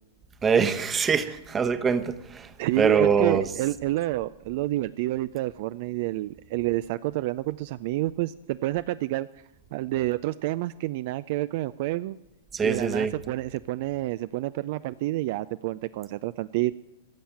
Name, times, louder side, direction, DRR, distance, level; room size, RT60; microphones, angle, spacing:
voice 1, 0.4-2.5 2.8-3.5 12.5-13.1, right 6 dB, 20° right, 1.0 m, -23 dB
voice 2, 2.6-9.3 9.7-12.2 12.6-16.7, right 17 dB, 55° right, 0.3 m, -29 dB
16.0 x 7.0 x 7.5 m
hypercardioid pair, 115°, 0 cm